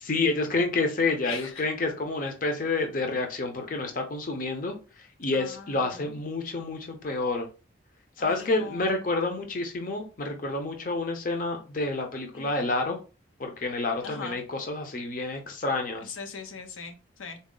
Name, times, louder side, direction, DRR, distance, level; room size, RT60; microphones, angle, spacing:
voice 1, 0.0-7.5 8.2-13.0 13.4-16.1, left 3 dB, 45° left, 0.6 m, -29 dB
voice 2, 1.2-1.7 2.6-2.7 5.3-6.1 8.2-9.1 12.3-12.6 14.0-14.4 16.0-17.4, left 5 dB, 85° left, 0.6 m, -41 dB
4.0 x 2.0 x 3.7 m
head